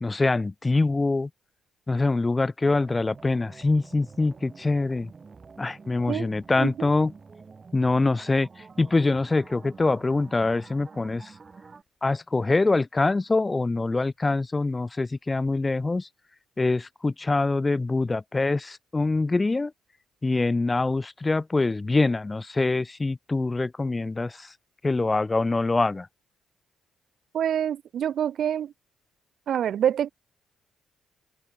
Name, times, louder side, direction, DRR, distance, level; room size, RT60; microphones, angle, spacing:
voice 1, 0.0-1.3 1.9-5.1 5.6-7.1 7.7-8.5 8.8-11.3 12.0-16.1 16.6-19.7 20.2-24.5 24.8-26.1, left 3 dB, 20° left, 0.6 m, -24 dB
sound 1, 2.6-11.8, right 4 dB, 35° right, 1.3 m, -48 dB
voice 2, 6.6-6.9 27.3-28.7 29.5-30.1, right 9 dB, 65° right, 1.0 m, -26 dB
cardioid pair, 90°, 0 cm